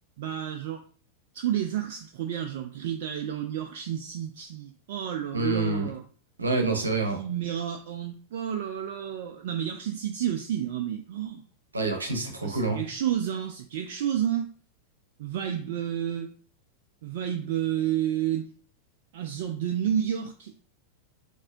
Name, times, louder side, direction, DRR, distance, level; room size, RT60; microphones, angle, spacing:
voice 1, 0.2-0.8 1.3-6.0 7.0-11.4 12.4-14.5 15.2-16.3 17.0-18.5 19.1-20.5, right 10 dB, 55° right, 5 dB, 0.3 m, -30 dB
voice 2, 5.3-5.9 6.4-7.2 11.7-12.8, right 3 dB, 75° right, 2 dB, 0.8 m, -27 dB
4.0 x 2.7 x 2.5 m, 0.43 s
figure-of-eight pair, 90°, 0 cm